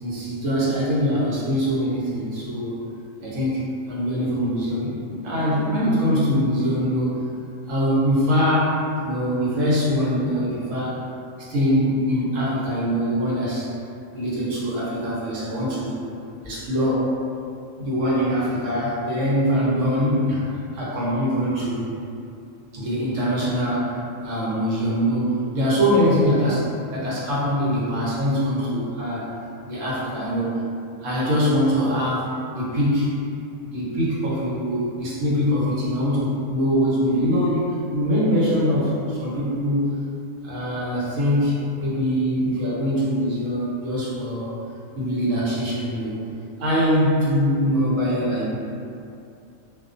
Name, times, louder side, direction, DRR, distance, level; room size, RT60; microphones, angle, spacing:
voice 1, 0.0-2.8 3.2-4.9 5.2-7.1 7.7-11.0 11.4-13.7 14.1-16.0 16.4-17.1 17.8-21.9 22.7-24.0 24.2-26.6 26.9-29.3 29.6-30.6 31.0-32.3 32.5-33.2 33.6-40.0 40.4-44.5 45.0-46.2 46.6-48.5, equal, 70° right, -7 dB, 1.0 m, -23 dB
2.4 x 2.2 x 2.5 m, 2.5 s
omnidirectional pair, 1.4 m